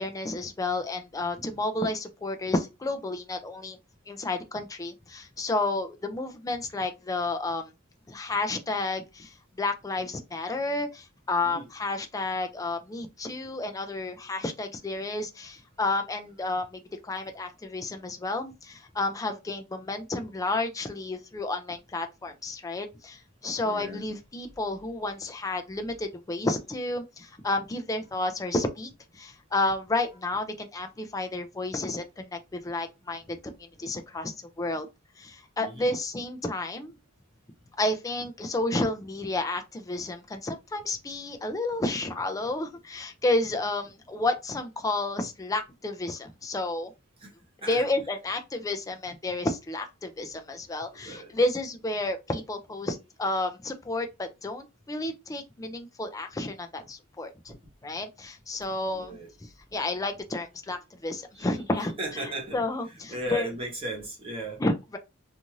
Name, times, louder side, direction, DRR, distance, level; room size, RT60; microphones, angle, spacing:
voice 1, 0.0-3.8 4.1-7.7 8.1-33.4 33.8-34.9 35.2-37.0 37.8-46.9 47.6-57.5 57.8-62.2 62.5-63.5 64.6-65.0, left 2 dB, 15° left, 0.4 m, -31 dB
voice 2, 23.6-24.1 35.6-35.9 47.2-47.3 47.6-47.9 50.9-51.4 58.9-59.3 61.3-62.6 63.1-64.6, right 1 dB, 25° right, 1.1 m, -37 dB
2.6 x 2.4 x 3.0 m
head